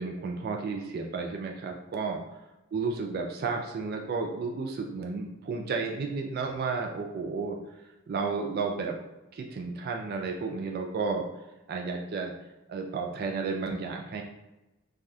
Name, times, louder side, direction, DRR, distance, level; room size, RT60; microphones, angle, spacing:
voice 1, 0.0-2.2 2.7-7.6 8.1-9.0 9.3-11.2 11.7-12.3 12.7-14.2, right 4 dB, 45° right, 2 dB, 0.3 m, -32 dB
3.3 x 2.3 x 2.6 m, 1.0 s
head